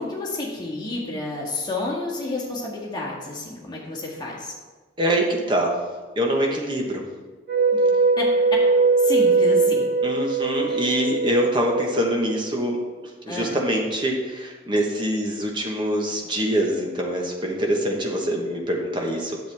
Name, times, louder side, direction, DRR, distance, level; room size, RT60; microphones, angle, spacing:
voice 1, 0.0-4.5 7.7-7.8 8.2-8.3 9.0-9.8 10.7-10.8 13.3-13.6, left 2 dB, 20° left, -4 dB, 1.8 m, -30 dB
voice 2, 5.0-5.7 6.2-7.0 10.0-12.8 13.3-19.4, equal, 25° right, 0 dB, 1.2 m, -24 dB
sound 1, 7.5-12.7, right 3 dB, 50° right, 1.5 m, -21 dB
9.6 x 7.7 x 3.5 m, 1.3 s
head